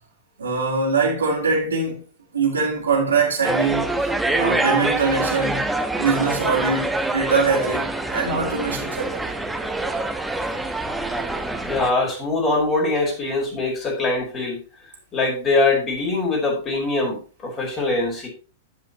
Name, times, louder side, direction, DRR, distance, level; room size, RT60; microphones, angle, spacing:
voice 1, 0.4-2.0 2.3-3.9 4.4-5.7 6.0-9.2, right 4 dB, 75° right, 3.7 m, -22 dB
sound 1, 3.4-11.9, right 2 dB, 5° right, 1.1 m, -25 dB
voice 2, 11.6-14.6 15.1-18.3, left 3 dB, 25° left, 4.7 m, -23 dB
15.5 x 5.7 x 2.9 m
figure-of-eight pair, 100°, 0 cm